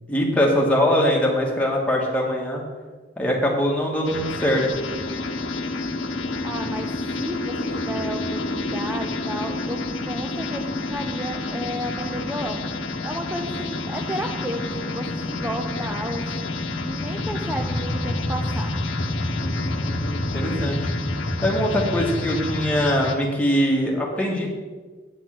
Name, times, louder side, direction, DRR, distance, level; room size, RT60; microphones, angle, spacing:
voice 1, 0.1-2.6 3.2-4.7 19.4-20.9 21.4-24.5, equal, 5° left, -3 dB, 2.0 m, -22 dB
sound 1, 4.1-23.2, left 2 dB, 90° left, 1.0 m, -28 dB
voice 2, 6.4-16.5 16.8-18.7, right 1 dB, 10° right, 2 dB, 0.6 m, -32 dB
8.6 x 7.8 x 6.0 m, 1.4 s
head